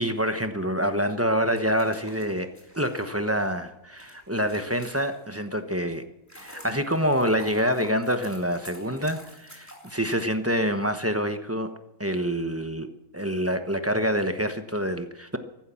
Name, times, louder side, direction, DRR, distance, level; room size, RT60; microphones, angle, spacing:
voice 1, 0.0-2.5 2.8-6.0 6.3-11.7 12.0-12.9 13.1-15.4, equal, 10° right, 7 dB, 0.9 m, -26 dB
sound 1, 1.4-5.5 6.0-10.7, equal, 10° left, 3.2 m, -49 dB
15.0 x 12.0 x 7.1 m, 0.90 s
omnidirectional pair, 1.6 m